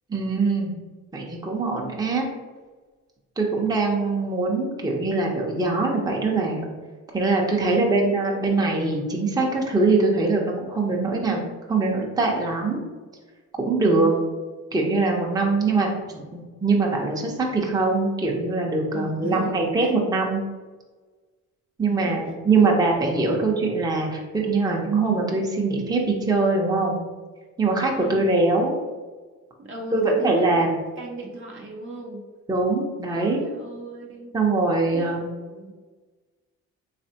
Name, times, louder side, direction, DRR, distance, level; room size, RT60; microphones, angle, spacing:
voice 1, 0.1-0.7 1.1-2.3 3.4-6.7 7.1-11.4 11.7-12.8 13.6-14.1 14.7-20.4 21.8-27.0 27.6-28.8 29.9-30.7 32.5-33.4 34.3-35.3, right 3 dB, 15° right, -2 dB, 0.7 m, -22 dB
voice 2, 7.6-8.0 13.8-14.3 18.9-19.9 21.9-23.0 23.3-23.6 28.0-28.4 29.6-30.7 31.0-32.3 33.1-34.3 34.9-35.7, right 1 dB, 45° right, 0 dB, 0.7 m, -36 dB
3.5 x 3.3 x 2.8 m, 1.3 s
cardioid pair, 90°, 30 cm